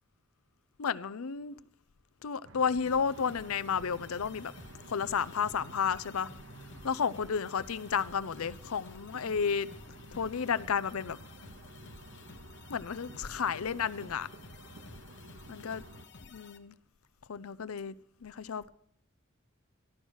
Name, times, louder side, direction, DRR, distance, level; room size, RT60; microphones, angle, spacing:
voice 1, 0.8-1.5 2.2-4.5 4.9-6.3 6.8-9.7 10.1-11.2 12.7-14.3 15.5-15.8 16.3-16.8 17.3-17.9 18.2-18.7, left 6 dB, 90° left, 15 dB, 0.6 m, -32 dB
sound 1, 2.4-16.1, right 2 dB, 65° right, 1.0 m, -52 dB
sound 2, 2.9-16.6, left 4 dB, 55° left, 1.0 m, -53 dB
13.5 x 11.5 x 6.4 m, 0.66 s
head